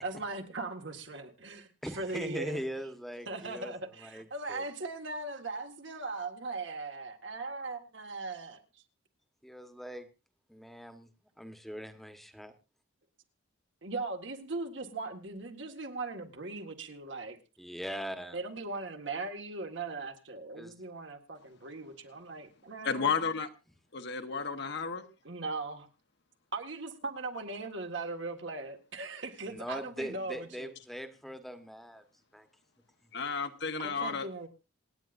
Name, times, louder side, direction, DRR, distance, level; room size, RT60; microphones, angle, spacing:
voice 1, 0.0-2.6 3.3-8.6 13.8-17.4 18.3-23.1 25.2-25.9 26.5-30.7 33.8-34.5, right 3 dB, 60° right, 5 dB, 1.8 m, -39 dB
voice 2, 1.8-3.7 4.0-4.6 9.4-10.1 10.5-11.1 11.4-12.5 17.6-18.4 20.5-20.7 29.4-32.0 32.3-32.5, equal, ahead, 8 dB, 1.2 m, -41 dB
voice 3, 22.8-23.5 23.9-25.1 33.1-34.3, left 5 dB, 55° left, 7 dB, 1.2 m, -32 dB
27.0 x 9.4 x 2.6 m, 0.29 s
head